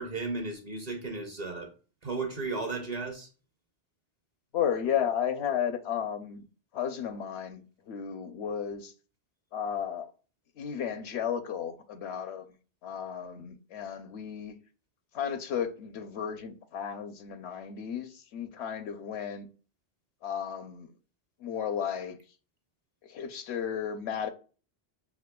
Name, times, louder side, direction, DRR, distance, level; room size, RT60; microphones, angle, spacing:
voice 1, 0.0-1.7 2.0-3.3, right 3 dB, 40° right, 0.7 m, -34 dB
voice 2, 4.5-6.4 6.7-8.9 9.5-10.1 10.6-12.5 12.8-14.5 15.1-19.5 20.2-20.9 21.4-22.2 23.1-24.3, left 8 dB, 80° left, 0.9 m, -33 dB
5.9 x 3.0 x 2.2 m
omnidirectional pair, 1.1 m